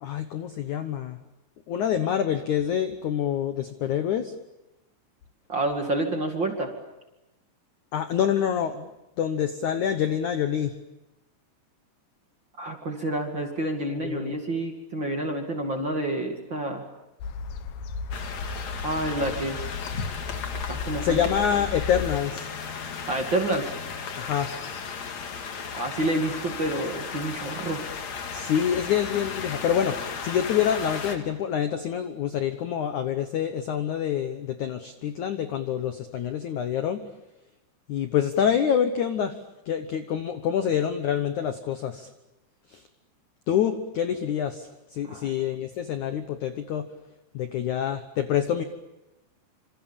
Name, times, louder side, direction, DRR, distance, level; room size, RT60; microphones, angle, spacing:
voice 1, 0.0-1.2 1.7-4.3 7.9-8.9 9.2-10.8 14.0-14.4 21.0-22.5 24.2-24.5 28.3-37.0 37.9-39.3 39.6-42.1 42.7-42.8 43.5-46.9 47.3-48.6, left 9 dB, 85° left, 8 dB, 1.7 m, -26 dB
voice 2, 5.5-6.7 12.6-16.9 18.7-19.6 20.7-21.3 23.1-23.7 25.7-27.8 45.0-45.3, right 1 dB, 35° right, 3 dB, 2.1 m, -28 dB
sound 1, 17.2-22.2, left 6 dB, 65° left, 2.5 m, -35 dB
sound 2, 18.1-31.2, left 6 dB, 50° left, 2.6 m, -35 dB
27.5 x 26.5 x 7.3 m, 0.97 s
omnidirectional pair, 5.2 m